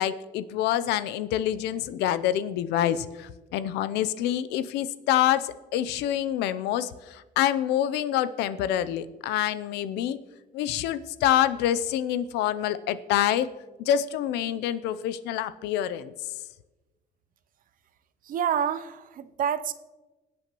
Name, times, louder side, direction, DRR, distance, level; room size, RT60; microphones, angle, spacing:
voice 1, 0.0-10.2 10.5-13.5 13.8-16.1, left 11 dB, 90° left, 14 dB, 0.6 m, -26 dB
voice 2, 18.3-19.7, right 8 dB, 55° right, 13 dB, 0.7 m, -28 dB
21.0 x 8.5 x 3.0 m, 1.1 s
cardioid pair, 110°, 17 cm